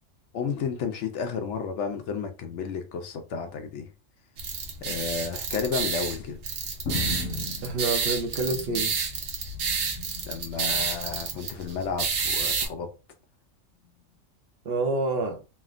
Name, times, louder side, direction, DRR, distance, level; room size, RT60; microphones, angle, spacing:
voice 1, 0.3-3.9 4.8-6.4 10.2-12.9, left 6 dB, 70° left, 0.8 m, -32 dB
sound 1, 4.4-12.7, right 5 dB, 75° right, 1.1 m, -30 dB
sound 2, 6.8-9.1 9.4-10.4 11.2-11.6 12.6-12.8, left 3 dB, 85° left, 1.3 m, -36 dB
voice 2, 7.6-8.9 14.6-15.4, right 3 dB, 60° right, 0.8 m, -27 dB
3.2 x 2.2 x 2.4 m
omnidirectional pair, 1.3 m